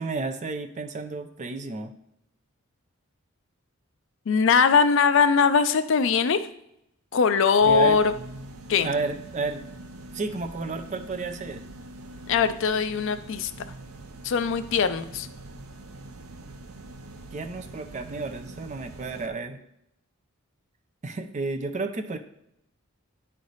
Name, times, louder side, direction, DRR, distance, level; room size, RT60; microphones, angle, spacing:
voice 1, 0.0-1.9 7.6-8.0 8.8-9.6 10.1-11.7 17.3-19.6 21.0-22.2, right 3 dB, 35° right, 8 dB, 0.4 m, -31 dB
voice 2, 4.3-6.5 7.1-8.1 8.7-8.9 12.3-13.5 14.2-15.3, left 5 dB, 60° left, 11 dB, 0.4 m, -21 dB
sound 1, 7.6-19.3, right 2 dB, 85° right, 0.6 m, -43 dB
9.4 x 3.3 x 4.0 m, 0.79 s
head